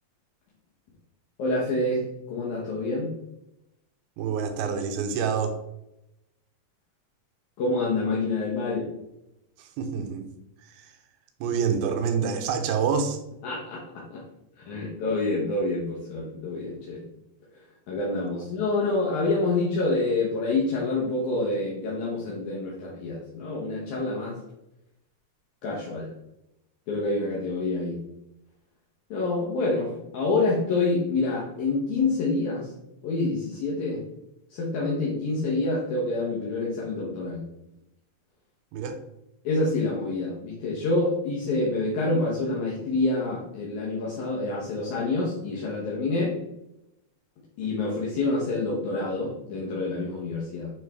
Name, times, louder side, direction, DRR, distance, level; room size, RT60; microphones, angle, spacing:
voice 1, 1.4-3.1 7.6-8.9 13.4-14.2 14.7-17.0 17.9-24.4 25.6-26.1 26.9-28.0 29.1-32.7 33.0-34.0 34.5-37.4 39.4-46.4 47.6-50.7, left 2 dB, 65° left, -4 dB, 2.0 m, -27 dB
voice 2, 4.2-5.6 9.6-10.3 10.6-11.0 11.4-13.2 38.7-39.0, right 6 dB, 85° right, 6 dB, 2.6 m, -27 dB
8.7 x 3.6 x 3.5 m, 0.87 s
omnidirectional pair, 4.5 m